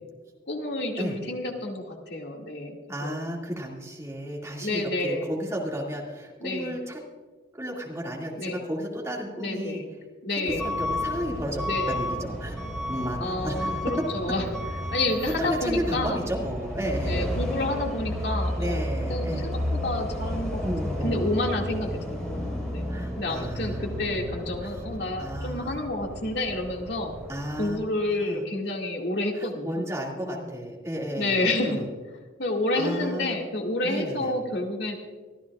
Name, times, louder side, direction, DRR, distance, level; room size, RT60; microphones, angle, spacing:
voice 1, 0.5-3.2 4.6-5.3 6.4-6.8 8.4-8.7 9.4-9.9 10.2-10.7 11.6-12.1 13.2-14.5 14.9-16.2 17.0-18.8 19.1-27.1 27.6-29.8 30.3-30.5 31.2-31.8 32.4-34.9, left 2 dB, 60° left, 1 dB, 2.1 m, -29 dB
voice 2, 2.9-7.0 7.5-9.8 10.4-12.6 12.9-13.8 15.2-17.3 18.6-19.5 20.6-21.2 22.9-23.8 25.2-25.7 27.3-27.8 28.2-28.4 29.4-31.8 32.8-33.4 33.8-34.3, equal, 15° right, -2 dB, 2.1 m, -33 dB
Truck / Alarm, 10.5-27.7, equal, 5° left, 4.2 m, -32 dB
24.5 x 13.5 x 2.4 m, 1.4 s
head